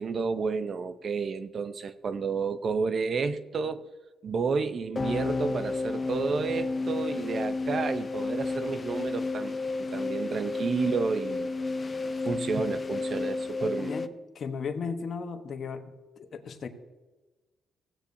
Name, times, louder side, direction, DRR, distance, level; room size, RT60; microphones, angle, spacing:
voice 1, 0.0-3.8 4.2-11.5 12.2-14.0, right 5 dB, 50° right, 0.6 m, -31 dB
sound 1, 5.0-14.1, left 3 dB, 30° left, 0.5 m, -31 dB
voice 2, 13.8-14.1 14.3-16.7, left 5 dB, 55° left, 1.0 m, -36 dB
16.0 x 8.4 x 2.7 m
cardioid pair, 90°, 0 cm